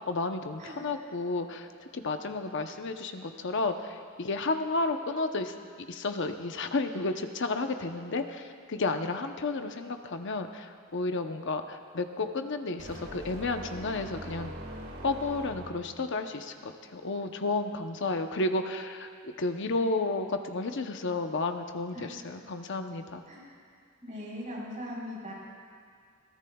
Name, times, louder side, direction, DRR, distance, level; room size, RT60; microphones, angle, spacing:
voice 1, 0.1-1.7 1.9-5.5 5.9-14.5 15.0-23.2, left 3 dB, 60° left, 6 dB, 0.8 m, -32 dB
sound 1, 12.8-16.0, right 1 dB, 80° right, 2.3 m, -42 dB
voice 2, 24.0-25.3, left 1 dB, 40° right, -5 dB, 4.2 m, -39 dB
21.5 x 17.0 x 2.3 m, 2.2 s
head